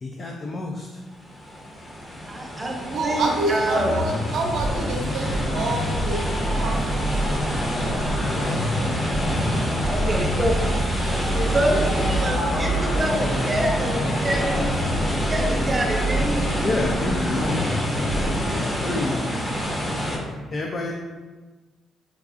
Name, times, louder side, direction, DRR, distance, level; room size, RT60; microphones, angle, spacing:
voice 1, 0.0-0.9 16.6-19.5 20.5-20.9, left 2 dB, 40° left, 0 dB, 0.3 m, -29 dB
sound 1, 1.1-20.2, equal, 25° left, 0.8 m, -27 dB
voice 2, 2.3-2.8 3.0-4.0 9.9-10.6 11.5-14.8 15.3-16.4, right 1 dB, 25° right, 1 dB, 0.6 m, -26 dB
voice 3, 2.9-7.5, right 2 dB, 80° right, 0 dB, 0.6 m, -28 dB
sound 2, 3.7-18.5, equal, 65° left, 0.7 m, -28 dB
voice 4, 11.0-12.0 12.3-13.3 19.2-20.0, left 1 dB, 85° left, -8 dB, 1.4 m, -33 dB
4.6 x 2.3 x 2.5 m, 1.3 s
cardioid pair, 90°, 0 cm